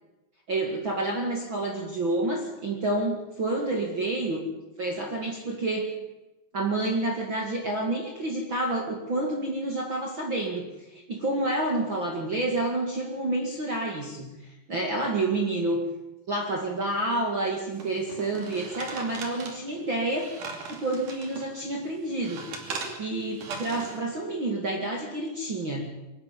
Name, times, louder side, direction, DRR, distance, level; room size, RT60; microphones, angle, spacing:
voice 1, 0.5-4.4 4.8-5.9 6.5-15.8 16.3-20.3 20.7-22.7 23.0-25.8, right 2 dB, 35° right, 0 dB, 2.5 m, -29 dB
sound 1, 17.8-21.5 21.9-24.0, right 4 dB, 55° right, 4.1 m, -39 dB
23.5 x 11.5 x 10.0 m, 1.0 s
omnidirectional pair, 4.4 m